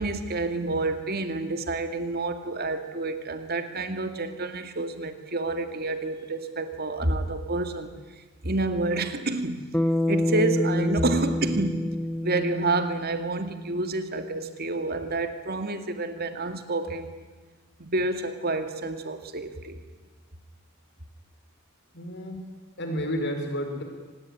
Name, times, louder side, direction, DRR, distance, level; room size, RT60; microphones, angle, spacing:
voice 1, 0.0-7.9 8.4-9.7 10.1-11.9 12.2-17.1 17.8-19.8, right 2 dB, 45° right, 8 dB, 2.2 m, -29 dB
Bass guitar, 9.7-14.1, left 1 dB, 5° left, 0.9 m, -28 dB
voice 2, 21.9-22.4 22.8-23.8, equal, 55° left, 5 dB, 5.0 m, -31 dB
25.0 x 19.0 x 9.9 m, 1.3 s
head